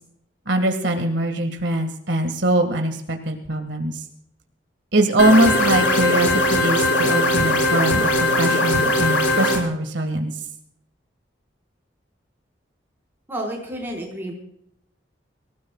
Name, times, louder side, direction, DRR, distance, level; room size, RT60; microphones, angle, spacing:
voice 1, 0.5-4.0 4.9-10.3, right 1 dB, 70° right, 4 dB, 1.9 m, -22 dB
sound 1, 5.2-9.6, left 1 dB, 85° left, 5.6 m, -19 dB
voice 2, 13.3-14.3, right 1 dB, 10° right, -2 dB, 4.7 m, -30 dB
25.5 x 17.0 x 2.4 m, 0.71 s
head